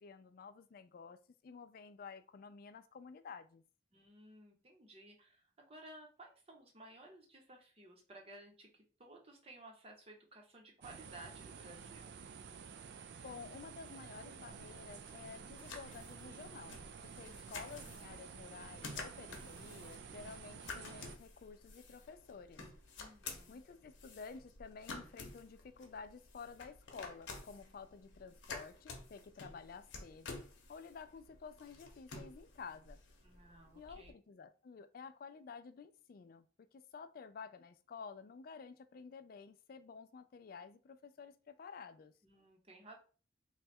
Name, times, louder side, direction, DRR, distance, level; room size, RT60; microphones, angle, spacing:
voice 1, 0.0-3.6 13.2-22.6 23.5-30.4 30.7-33.0 33.7-36.5 36.7-42.1, left 5 dB, 50° left, 0.3 m, -52 dB
voice 2, 3.9-12.2 23.0-23.6 33.2-34.1 42.2-43.0, right 1 dB, 30° right, 0.8 m, -56 dB
sound 1, 10.8-21.2, right 6 dB, 60° right, 0.3 m, -51 dB
sound 2, 14.5-34.1, left 3 dB, 75° left, 0.8 m, -52 dB
3.2 x 2.3 x 4.3 m
head